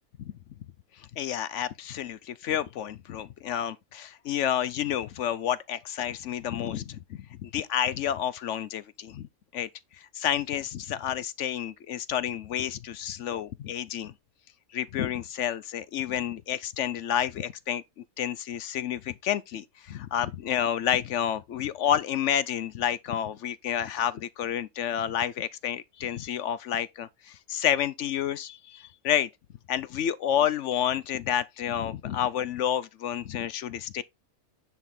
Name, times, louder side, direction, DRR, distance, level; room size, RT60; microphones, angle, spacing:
voice 1, 1.2-9.3 9.5-9.7 10.0-14.1 14.7-17.8 18.2-29.3 29.7-34.0, left 10 dB, 65° left, 0.8 m, -30 dB
9.7 x 3.7 x 4.3 m
omnidirectional pair, 1.5 m